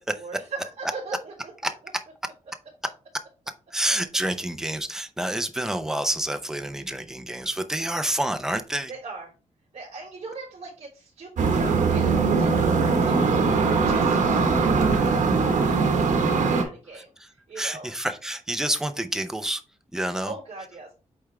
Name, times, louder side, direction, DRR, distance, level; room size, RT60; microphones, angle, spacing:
voice 1, 0.1-1.7 8.9-9.3 9.7-12.5 12.8-13.4 13.8-17.9 20.2-20.9, right 3 dB, 55° right, -7 dB, 2.9 m, -40 dB
voice 2, 3.7-8.9 17.6-19.6 19.9-20.3, right 1 dB, 5° right, 8 dB, 0.5 m, -28 dB
sound 1, 11.4-16.6, right 4 dB, 80° right, 1.3 m, -21 dB
8.4 x 3.4 x 3.4 m, 0.34 s
wide cardioid pair, 180°, 13 cm